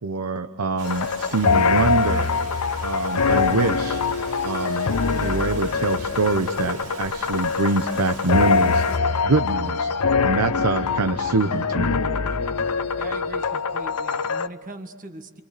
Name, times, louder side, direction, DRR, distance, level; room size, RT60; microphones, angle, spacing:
voice 1, 0.0-2.3 2.8-4.0 4.4-8.8 9.2-9.9 10.2-12.0, right 3 dB, 85° right, 9 dB, 0.9 m, -24 dB
sound 1, 0.8-14.5, left 5 dB, 85° left, 0.8 m, -23 dB
Rain, 0.8-9.0, right 3 dB, 60° right, 3.2 m, -41 dB
voice 2, 13.0-15.4, right 1 dB, 35° right, 7 dB, 1.6 m, -40 dB
29.0 x 27.5 x 6.7 m, 1.4 s
head